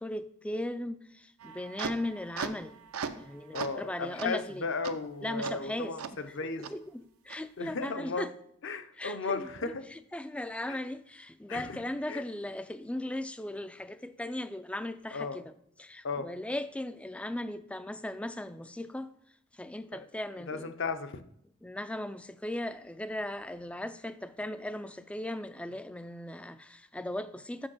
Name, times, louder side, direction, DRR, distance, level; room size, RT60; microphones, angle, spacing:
voice 1, 0.0-2.8 3.1-4.6 5.2-6.4 6.7-8.3 9.0-15.4 15.8-19.1 19.5-20.7 21.6-27.7, left 1 dB, 5° left, 0.3 m, -38 dB
sound 1, 1.4-3.3 3.5-3.8 4.2-4.3 4.8-4.9 5.4-5.5 6.0-6.1 6.6-6.7 7.3-7.4, right 6 dB, 70° right, 0.6 m, -38 dB
voice 2, 3.5-6.7 7.6-8.3 8.6-9.8 10.7-10.8 11.5-11.8 12.1-12.2 15.1-15.4 16.0-16.3 19.9-20.1 20.5-21.2, left 4 dB, 55° left, 0.7 m, -35 dB
6.3 x 5.4 x 6.2 m
head